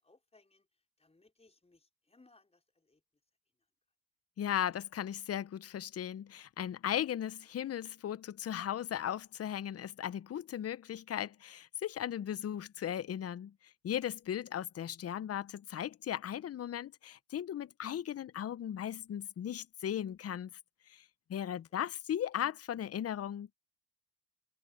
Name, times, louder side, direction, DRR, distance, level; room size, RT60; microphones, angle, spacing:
voice 1, 0.0-3.0 3.6-3.7 21.7-21.8, left 3 dB, 10° left, 4.9 m, -66 dB
voice 2, 4.4-20.5 20.9-21.0 21.3-23.5, left 10 dB, 30° left, 0.8 m, -37 dB
hypercardioid pair, 80°, 49 cm